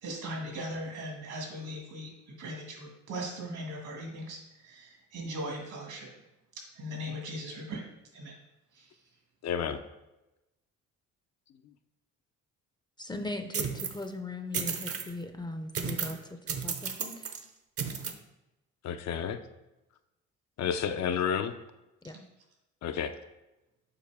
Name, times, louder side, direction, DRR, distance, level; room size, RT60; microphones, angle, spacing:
voice 1, 0.0-2.1 2.4-4.4 4.6-6.1 6.8-7.8 8.1-8.3 8.8-8.9 22.1-22.2, equal, 75° right, 0 dB, 2.0 m, -39 dB
voice 2, 9.4-9.8 18.8-19.4 20.6-21.5 22.8-23.1, left 8 dB, 60° left, 8 dB, 0.6 m, -30 dB
voice 3, 13.0-17.1 22.0-22.2, left 2 dB, 15° left, 6 dB, 0.5 m, -39 dB
sound 1, 13.5-14.0 14.5-15.1 15.7-16.2 16.5-17.4 17.8-18.1, right 6 dB, 50° right, 0.7 m, -33 dB
6.9 x 4.6 x 3.5 m, 0.98 s
cardioid pair, 90°, 30 cm